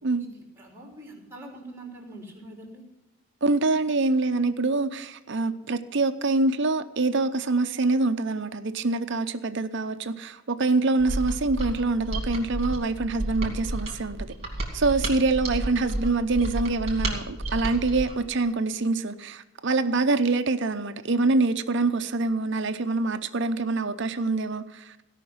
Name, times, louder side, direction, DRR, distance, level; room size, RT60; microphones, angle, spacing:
voice 1, 0.2-2.8, right 1 dB, 10° right, 3.3 m, -44 dB
voice 2, 3.4-14.3 14.7-24.9, right 3 dB, 55° right, 0.7 m, -25 dB
Mechanisms, 11.0-18.2, right 1 dB, 30° right, 3.1 m, -31 dB
17.0 x 5.8 x 7.9 m
head